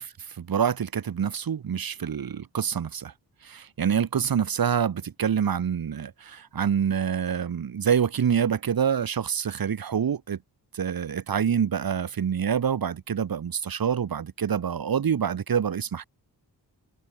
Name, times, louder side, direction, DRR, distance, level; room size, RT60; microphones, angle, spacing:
voice 1, 0.0-3.1 3.4-10.4 10.7-16.1, right 8 dB, 60° right, 1.5 m, -26 dB
wide cardioid pair, 150°, 39 cm